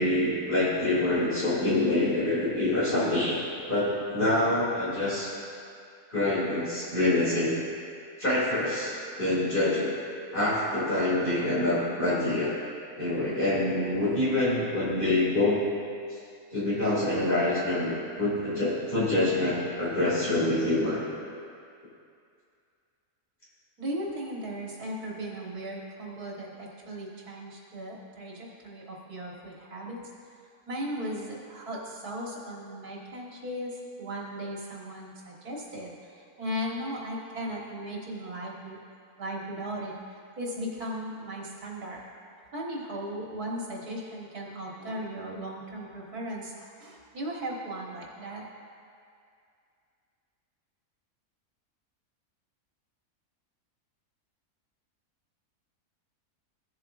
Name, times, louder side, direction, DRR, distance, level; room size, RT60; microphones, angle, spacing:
voice 1, 0.0-5.3 6.1-7.5 8.2-9.9 10.3-12.5 13.0-15.6 16.1-16.2 16.5-21.0, left 2 dB, 35° left, -8 dB, 2.5 m, -26 dB
voice 2, 23.8-30.0 30.7-38.8 39.2-39.9 40.4-42.0 42.5-48.4, equal, 75° right, -3 dB, 2.0 m, -37 dB
15.0 x 7.6 x 2.5 m, 2.4 s
omnidirectional pair, 1.6 m